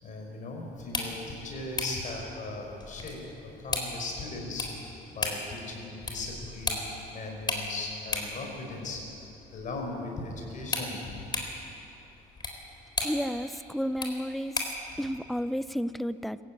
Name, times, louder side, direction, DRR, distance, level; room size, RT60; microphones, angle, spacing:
voice 1, 0.0-9.0 9.5-11.3, left 2 dB, 50° left, 1 dB, 5.8 m, -38 dB
sound 1, 0.7-14.9, left 2 dB, 25° left, 4.0 m, -37 dB
voice 2, 13.0-14.7 15.0-16.4, equal, ahead, 14 dB, 0.6 m, -32 dB
25.0 x 15.0 x 9.1 m, 2.9 s
cardioid pair, 110°, 17 cm